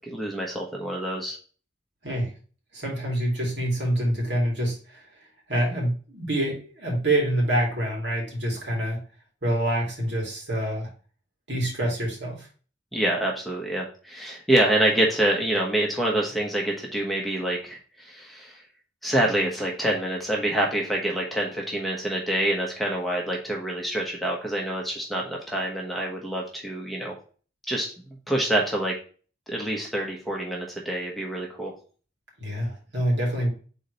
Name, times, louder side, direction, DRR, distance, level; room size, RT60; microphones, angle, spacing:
voice 1, 0.1-1.4 12.9-18.5 19.0-27.1 27.7-27.9 28.3-28.9 29.5-31.7, right 1 dB, ahead, -2 dB, 1.1 m, -26 dB
voice 2, 2.7-5.0 5.5-9.0 9.4-10.9 11.5-12.5 32.4-33.5, right 1 dB, 70° right, -2 dB, 2.7 m, -26 dB
5.0 x 4.1 x 5.0 m, 0.39 s
head